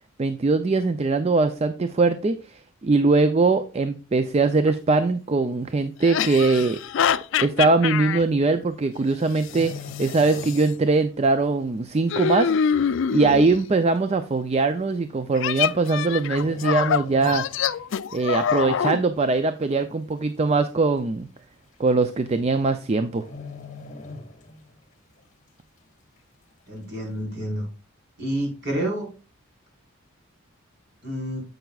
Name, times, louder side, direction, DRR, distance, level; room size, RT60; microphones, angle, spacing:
voice 1, 0.2-6.8 7.4-17.7 18.1-21.3 21.8-23.3, right 3 dB, 30° right, 10 dB, 0.4 m, -22 dB
sound 1, 4.7-4.8 6.0-8.2 9.5-10.6 12.1-13.6 15.3-19.0, left 7 dB, 55° left, 0.3 m, -25 dB
sound 2, 9.3-11.0 11.2-11.5 12.1-12.2 13.1-13.2 13.4-13.5 14.3-14.6 15.7-16.1 16.3-17.9 18.2-18.5 19.0-19.5 19.8-19.9 20.2-20.3 20.7-20.8 21.7-21.8 22.1-22.4 22.7-22.8 23.2-24.8 25.2-25.3, left 4 dB, 35° left, 1.4 m, -40 dB
voice 2, 26.7-27.7 28.2-29.1 31.0-31.4, right 1 dB, 50° right, -2 dB, 4.4 m, -28 dB
10.5 x 7.9 x 2.3 m, 0.34 s
head